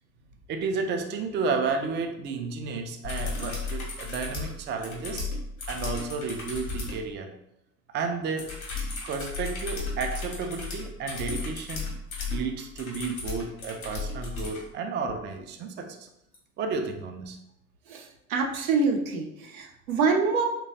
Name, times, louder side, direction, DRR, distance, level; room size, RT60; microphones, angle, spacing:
voice 1, 0.5-5.3 5.7-7.3 7.9-8.5 9.0-11.9 12.3-16.1 16.6-17.4, right 4 dB, 30° right, 4 dB, 0.4 m, -32 dB
sound 1, 3.0-7.0 8.4-14.6 16.3-16.4, left 3 dB, 85° left, 0.7 m, -34 dB
voice 2, 17.9-20.5, right 4 dB, 80° right, 2 dB, 0.5 m, -26 dB
3.0 x 2.2 x 2.7 m, 0.80 s
figure-of-eight pair, 55°, 41 cm